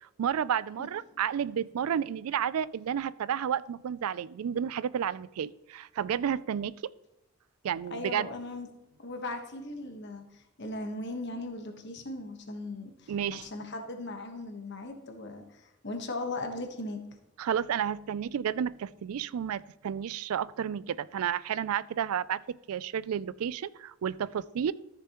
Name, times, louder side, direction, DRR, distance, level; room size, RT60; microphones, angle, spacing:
voice 1, 0.0-6.7 7.6-8.3 13.1-13.5 17.4-22.4 22.7-24.7, right 8 dB, 85° right, 19 dB, 0.3 m, -31 dB
voice 2, 7.9-8.7 9.0-17.0, left 2 dB, 50° left, 4 dB, 1.3 m, -38 dB
13.5 x 6.8 x 3.0 m, 0.95 s
head